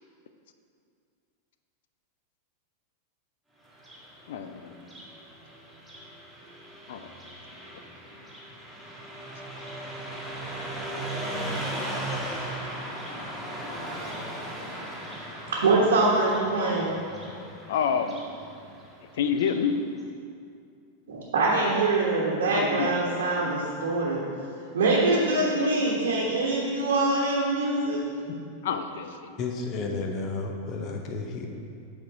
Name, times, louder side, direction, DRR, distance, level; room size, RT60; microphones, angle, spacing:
Car passing by, 3.7-19.7, right 1 dB, ahead, 1.8 m, -38 dB
voice 1, 4.3-4.8 6.9-7.1 9.4-9.5 17.7-18.2 19.1-19.9 22.5-23.0 28.6-29.4, left 7 dB, 55° left, 9 dB, 0.4 m, -29 dB
voice 2, 15.5-16.9 21.1-28.0, right 2 dB, 65° right, -5 dB, 1.2 m, -24 dB
voice 3, 29.4-31.5, left 3 dB, 35° left, 3 dB, 0.9 m, -32 dB
8.3 x 4.4 x 5.0 m, 2.4 s
figure-of-eight pair, 90°, 0 cm